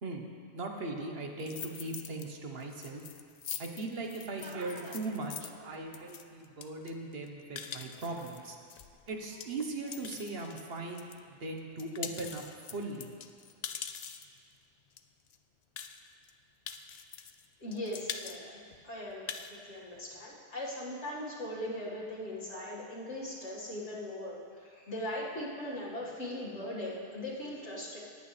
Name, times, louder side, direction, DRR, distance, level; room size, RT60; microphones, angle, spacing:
voice 1, 0.5-3.0 3.6-8.6 9.1-13.1, right 2 dB, 60° right, 2 dB, 1.3 m, -39 dB
sound 1, 1.4-2.3 2.6-11.2 11.6-14.4 15.0-15.1 15.3-15.4 15.8-16.3 16.7-17.5 17.7-18.4 18.7-18.8 19.1-19.6, left 7 dB, 55° left, 0.5 m, -44 dB
voice 2, 17.6-28.0, left 1 dB, 85° left, -5 dB, 2.4 m, -39 dB
19.0 x 8.4 x 3.3 m, 2.2 s
omnidirectional pair, 1.1 m